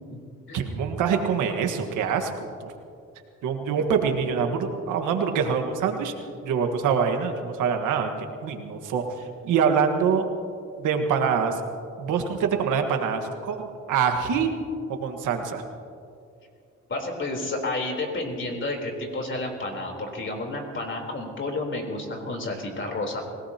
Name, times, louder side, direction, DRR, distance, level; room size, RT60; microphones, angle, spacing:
voice 1, 0.5-2.7 3.4-6.1 6.4-8.1 8.4-10.3 10.8-11.6 12.0-14.5 14.9-15.6, right 6 dB, 85° right, 5 dB, 1.6 m, -25 dB
voice 2, 16.9-23.2, left 2 dB, 40° left, 1 dB, 3.8 m, -31 dB
26.0 x 17.5 x 2.9 m, 2.5 s
cardioid pair, 90°, 30 cm